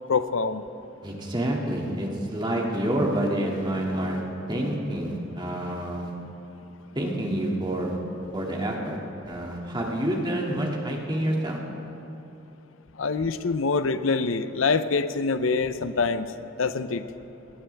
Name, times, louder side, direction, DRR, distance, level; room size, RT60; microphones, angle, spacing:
voice 1, 0.1-0.6 13.0-17.0, left 4 dB, 85° left, 11 dB, 0.6 m, -25 dB
voice 2, 1.0-4.2 4.5-6.1 6.9-8.0 8.3-9.0 9.2-11.6, right 1 dB, 25° right, -2 dB, 2.3 m, -28 dB
22.0 x 19.0 x 3.5 m, 2.9 s
head